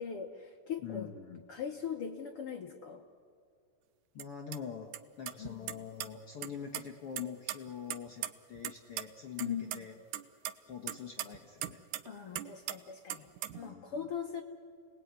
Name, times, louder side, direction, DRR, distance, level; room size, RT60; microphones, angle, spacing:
voice 1, 0.0-1.1 1.5-3.0 5.4-5.7 9.4-9.8 12.1-13.3 13.6-14.4, left 7 dB, 90° left, 2 dB, 1.2 m, -40 dB
voice 2, 0.8-1.4 4.1-4.9 5.2-10.0 10.7-11.8 13.5-14.1, left 8 dB, 60° left, 1 dB, 1.5 m, -44 dB
sound 1, 4.2-4.3 4.5-4.6 4.9-5.0 5.3-6.1 6.4-6.8 7.2-8.7 9.0-9.1 9.4-9.8 10.1-12.1 12.4-12.8 13.1-13.6, right 13 dB, 75° right, 1.9 m, -38 dB
29.0 x 19.5 x 9.5 m, 2.2 s
omnidirectional pair, 4.4 m